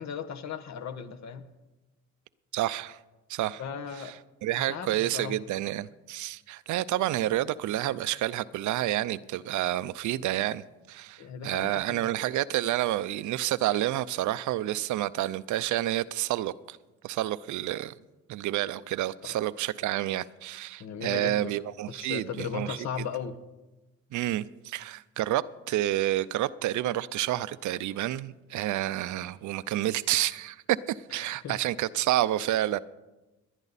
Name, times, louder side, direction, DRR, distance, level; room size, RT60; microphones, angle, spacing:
voice 1, 0.0-1.4 3.6-4.1 4.5-5.4 11.2-12.1 19.2-19.3 20.8-21.5 21.9-23.3 31.1-31.6, left 7 dB, 65° left, 1.1 m, -37 dB
voice 2, 2.5-3.0 3.3-3.6 4.0-4.1 4.4-16.8 17.0-17.9 18.3-22.8 24.1-30.6 30.9-32.8, right 14 dB, 75° right, 0.5 m, -29 dB
19.0 x 10.5 x 4.1 m
cardioid pair, 90°, 30 cm